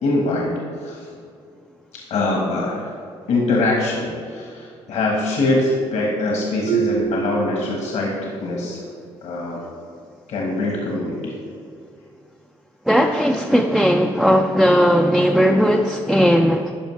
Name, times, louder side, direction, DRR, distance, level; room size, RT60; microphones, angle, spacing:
voice 1, 0.0-1.1 1.9-2.8 3.3-8.8 9.2-9.7 10.3-11.4, left 2 dB, 75° left, -2 dB, 1.3 m, -23 dB
Marimba xylophone, 6.7-8.4, right 8 dB, 85° right, 0.4 m, -26 dB
voice 2, 12.9-16.7, equal, ahead, 3 dB, 0.4 m, -17 dB
10.0 x 5.3 x 3.2 m, 2.4 s
cardioid pair, 75°, 12 cm